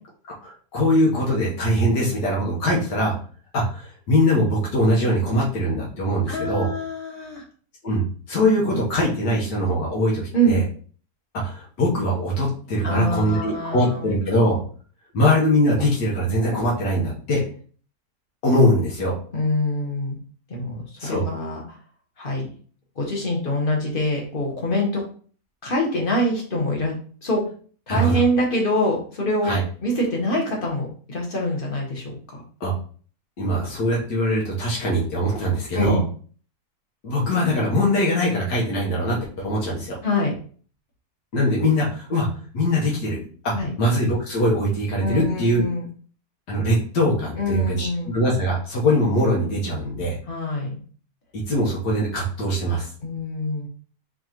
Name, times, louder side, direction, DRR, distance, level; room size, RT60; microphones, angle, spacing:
voice 1, 0.4-3.1 3.5-6.7 7.8-10.6 11.3-14.6 15.1-17.4 18.4-19.2 21.0-21.2 27.9-28.2 29.5-29.6 32.6-32.7 33.4-36.0 37.0-40.0 41.3-42.3 42.5-45.6 46.5-50.2 51.3-52.9, equal, 90° left, -4 dB, 1.8 m, -22 dB
voice 2, 6.3-7.4 10.3-10.6 12.8-14.1 19.3-20.2 20.5-21.8 22.2-22.5 23.0-25.0 25.6-26.9 27.2-27.4 27.9-29.5 29.8-32.4 35.7-36.0 40.0-40.3 43.5-43.7 45.0-45.9 47.4-48.2 50.3-50.8 53.0-53.7, equal, 35° left, -1 dB, 1.2 m, -25 dB
4.2 x 3.3 x 3.0 m, 0.43 s
omnidirectional pair, 1.8 m